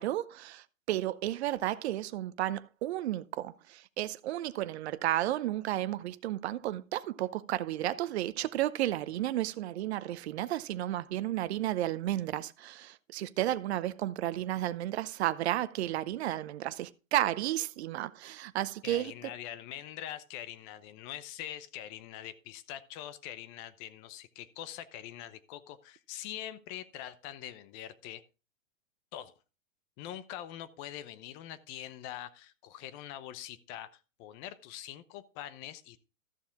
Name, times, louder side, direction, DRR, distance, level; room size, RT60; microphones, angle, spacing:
voice 1, 0.0-19.3, right 14 dB, 55° right, 0.7 m, -33 dB
voice 2, 18.8-28.2 29.1-29.3 30.0-36.0, left 12 dB, 30° left, 0.8 m, -44 dB
13.5 x 7.0 x 3.6 m
hypercardioid pair, 125°, 39 cm